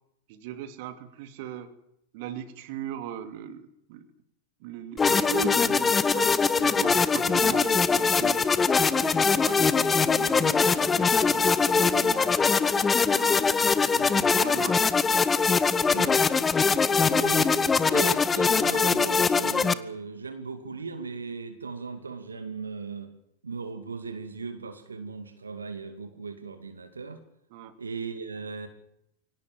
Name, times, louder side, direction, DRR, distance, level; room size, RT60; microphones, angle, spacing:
voice 1, 0.3-1.7 2.1-4.1 4.6-8.4 8.9-12.4 12.9-14.9 27.5-27.7, right 8 dB, 50° right, 9 dB, 2.5 m, -39 dB
sound 1, 5.0-19.7, left 5 dB, 15° left, 1.0 m, -22 dB
voice 2, 15.9-16.2 17.1-17.5 17.9-23.1 23.4-27.2 27.8-28.7, right 4 dB, 80° right, 8 dB, 2.5 m, -37 dB
24.0 x 18.0 x 7.6 m, 0.76 s
figure-of-eight pair, 95°, 0 cm